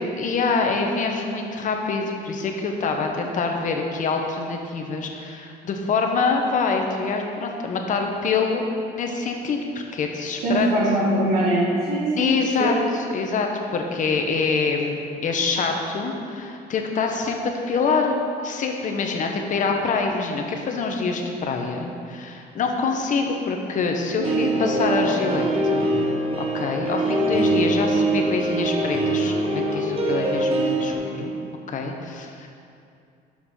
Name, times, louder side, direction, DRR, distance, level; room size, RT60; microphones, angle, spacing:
voice 1, 0.2-10.7 12.2-25.9 26.5-31.3 31.7-32.5, left 4 dB, 50° left, 3 dB, 0.9 m, -25 dB
voice 2, 10.4-12.7 24.1-24.3 24.6-24.8, right 1 dB, 75° right, -8 dB, 1.7 m, -22 dB
sound 1, 24.2-30.9, right 2 dB, 35° right, 1.2 m, -23 dB
6.4 x 5.8 x 5.6 m, 2.5 s
cardioid pair, 110°, 17 cm